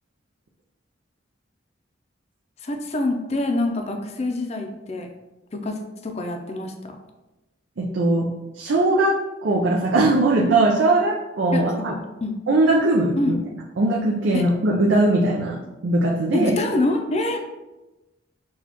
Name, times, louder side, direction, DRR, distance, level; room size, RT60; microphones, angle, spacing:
voice 1, 2.6-5.1 5.5-7.0 11.5-12.4 13.2-13.4 14.3-14.4 16.3-17.4, left 2 dB, 35° left, 4 dB, 0.4 m, -26 dB
voice 2, 7.8-8.3 8.5-9.2 9.4-11.9 12.5-13.4 13.8-15.6 15.8-16.5, right 2 dB, 80° right, -1 dB, 0.5 m, -20 dB
6.1 x 2.3 x 2.9 m, 1.1 s
head